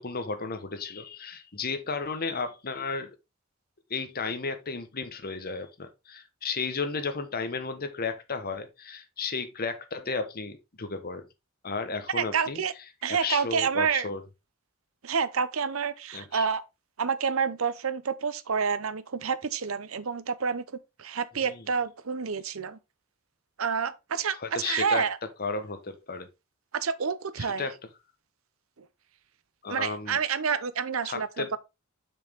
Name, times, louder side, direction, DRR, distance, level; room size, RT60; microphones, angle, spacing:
voice 1, 0.0-3.1 3.9-11.2 11.6-12.6 13.1-14.2 16.1-16.5 21.4-21.6 24.4-25.0 25.4-26.3 27.6-27.8 29.6-30.2 31.0-31.5, left 4 dB, 45° left, 1.2 m, -33 dB
voice 2, 12.1-12.7 13.0-14.1 15.0-16.6 17.0-22.8 23.6-25.2 26.7-27.7 28.8-28.9 29.7-31.6, right 6 dB, 75° right, 0.8 m, -29 dB
7.0 x 6.2 x 3.5 m
head